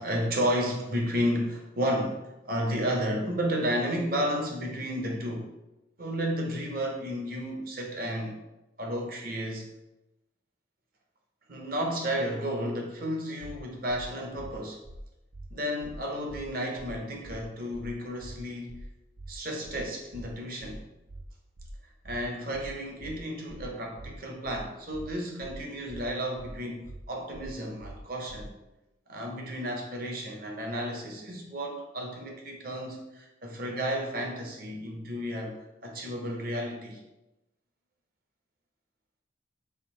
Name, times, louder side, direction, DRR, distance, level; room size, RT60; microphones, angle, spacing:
voice 1, 0.0-5.5 6.0-8.4 8.8-9.7 11.5-14.8 15.5-18.8 19.3-20.8 22.0-28.6 29.1-37.0, equal, 45° right, 0 dB, 0.7 m, -32 dB
sound 1, 13.4-13.6 13.9-14.0 14.4-14.5 14.8-15.0 15.3-15.5 15.8-16.0 16.3-16.4 16.8-16.9 17.2-17.4 17.7-17.9 18.2-18.4 18.7-18.8 19.2-19.3 19.6-19.8 20.1-20.3 20.6-20.8 21.1-21.2 21.6-21.7 22.0-22.2 22.5-22.7 23.0-23.2 23.5-23.6 24.0-24.1 24.4-24.6 24.9-25.1 25.4-25.6 25.9-26.0 26.4-26.5 26.8-27.0 27.3-27.5 27.8-28.0 28.3-28.4, right 2 dB, 30° right, 0.3 m, -44 dB
3.6 x 2.6 x 4.3 m, 0.95 s
head